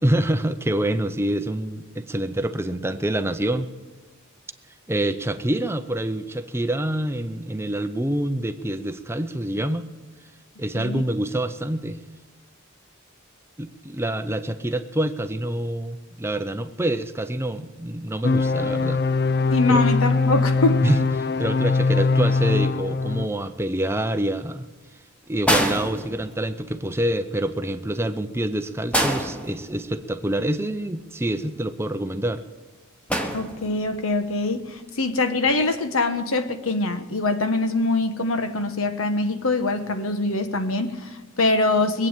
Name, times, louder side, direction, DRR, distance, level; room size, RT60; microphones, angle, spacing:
voice 1, 0.0-3.7 4.9-9.9 10.6-12.0 13.6-19.0 19.7-19.8 20.8-21.0 21.4-24.7 25.3-32.4, right 1 dB, 10° right, 0.6 m, -26 dB
sound 1, 18.2-23.3, left 3 dB, 50° left, 0.5 m, -21 dB
voice 2, 19.5-20.8 33.3-42.1, left 2 dB, 75° left, 1.3 m, -23 dB
sound 2, 25.5-26.7 28.9-30.2 33.1-34.0 35.3-35.5, equal, 5° left, 1.3 m, -26 dB
21.5 x 8.6 x 7.5 m
head